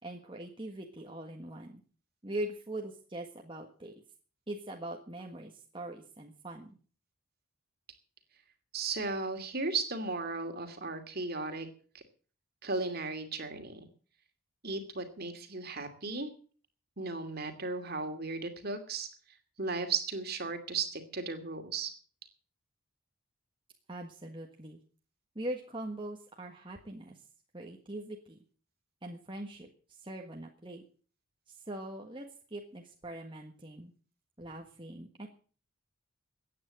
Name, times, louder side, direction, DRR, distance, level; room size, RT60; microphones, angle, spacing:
voice 1, 0.0-1.8 2.2-3.9 4.5-6.8 23.9-24.8 25.3-27.2 27.5-28.4 29.0-30.8 31.5-33.9 34.4-35.3, right 1 dB, 25° right, 1 dB, 1.5 m, -42 dB
voice 2, 8.7-11.7 11.9-12.0 12.6-13.8 14.6-16.3 17.0-19.1 19.6-21.9, right 3 dB, 45° right, 7 dB, 2.5 m, -35 dB
15.0 x 9.4 x 7.6 m, 0.42 s
head